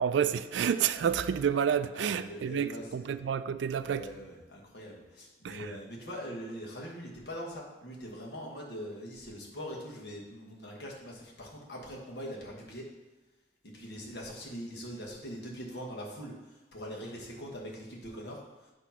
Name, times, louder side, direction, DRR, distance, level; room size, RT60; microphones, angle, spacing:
voice 1, 0.0-4.0 5.4-5.7, right 8 dB, 70° right, 0.3 m, -29 dB
voice 2, 1.9-3.2 3.8-12.9 13.6-18.7, equal, 60° left, 1.4 m, -42 dB
7.9 x 3.1 x 5.7 m
head